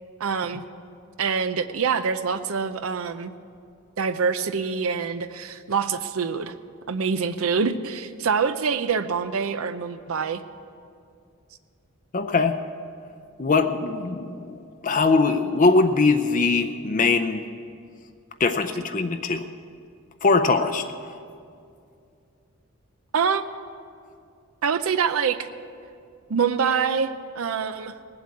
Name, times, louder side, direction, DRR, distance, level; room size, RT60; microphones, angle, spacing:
voice 1, 0.2-0.6 1.2-3.3 4.0-6.5 6.9-10.4 23.1-23.4 24.6-25.5 26.3-27.1 27.4-27.9, right 6 dB, 85° right, 11 dB, 0.6 m, -25 dB
voice 2, 12.1-12.6 13.4-14.6 14.8-17.4 18.4-19.5 20.2-20.9, left 3 dB, 40° left, 7 dB, 0.5 m, -21 dB
18.5 x 7.9 x 8.4 m, 2.4 s
head